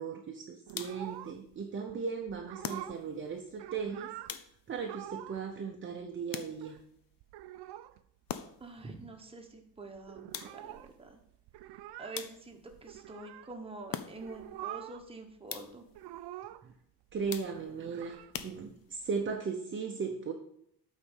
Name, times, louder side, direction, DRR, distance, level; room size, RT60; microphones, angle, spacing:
voice 1, 0.0-4.1 4.7-6.8 16.6-16.7 17.1-18.2 18.4-20.3, right 5 dB, 30° right, 2 dB, 0.7 m, -37 dB
sound 1, 0.7-1.2 2.6-3.3 4.3-4.9 6.3-6.9 8.3-8.8 10.3-10.8 12.1-12.7 13.9-14.5 15.5-15.9 17.3-17.8 18.3-19.1, left 10 dB, 60° left, 0.6 m, -43 dB
sound 2, 0.7-1.6 1.9-2.0 2.3-3.1 3.4-4.4 4.8-5.5 5.7-5.8 6.0-6.8 7.2-8.0 8.3-8.4 8.6-9.2 9.5-9.6 9.8-13.5 14.1-15.1 15.4-16.8 17.1-19.3, right 14 dB, 80° right, 0.5 m, -46 dB
voice 2, 8.6-11.2 12.0-15.9, right 3 dB, 15° right, 2 dB, 1.1 m, -46 dB
8.7 x 4.1 x 6.4 m, 0.70 s
cardioid pair, 165°, 40 cm